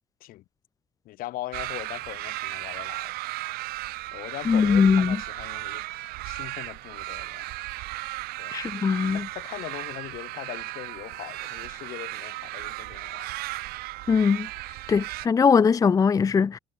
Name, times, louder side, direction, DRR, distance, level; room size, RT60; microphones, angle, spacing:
voice 1, 1.1-3.1 4.1-7.6 8.4-8.6 9.1-13.3, left 16 dB, 70° left, 2.1 m, -40 dB
sound 1, 1.5-15.3, right 20 dB, 80° right, 5.6 m, -35 dB
voice 2, 4.5-5.2 8.5-9.2 14.1-14.5 14.9-16.6, left 6 dB, 20° left, 0.7 m, -21 dB
cardioid pair, 135°, 16 cm